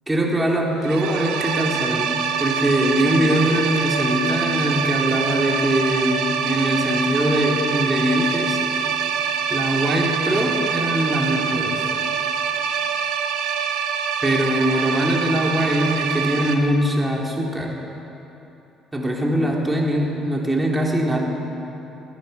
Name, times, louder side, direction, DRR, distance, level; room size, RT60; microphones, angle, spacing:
voice 1, 0.1-2.1 2.4-8.6 9.5-11.8 14.2-17.8 18.9-21.2, equal, 15° right, -2 dB, 3.4 m, -22 dB
sound 1, 0.8-16.5, right 7 dB, 75° right, 1.1 m, -25 dB
21.5 x 10.0 x 5.9 m, 3.0 s
hypercardioid pair, 55°, 0 cm